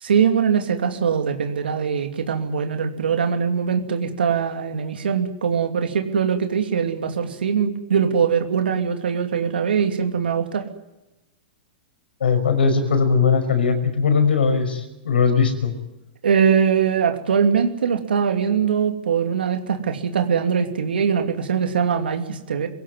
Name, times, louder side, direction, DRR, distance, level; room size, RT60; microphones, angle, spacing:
voice 1, 0.0-10.6 16.2-22.7, right 7 dB, 90° right, 5 dB, 2.8 m, -22 dB
voice 2, 12.2-15.7, left 5 dB, 90° left, 8 dB, 5.9 m, -19 dB
25.0 x 17.5 x 9.5 m, 0.98 s
hypercardioid pair, 130°, 5 cm